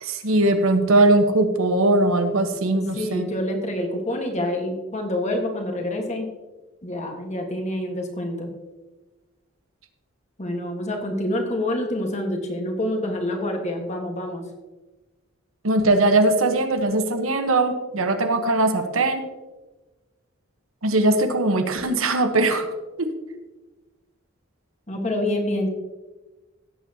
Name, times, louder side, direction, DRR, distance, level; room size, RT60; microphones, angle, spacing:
voice 1, 0.0-3.3 15.6-19.2 20.8-22.7 23.0-23.1, right 2 dB, 85° right, 7 dB, 1.2 m, -20 dB
voice 2, 2.7-6.3 6.8-8.5 10.4-14.4 24.9-25.7, left 1 dB, 35° left, 3 dB, 1.6 m, -27 dB
16.5 x 8.5 x 2.9 m, 1.2 s
head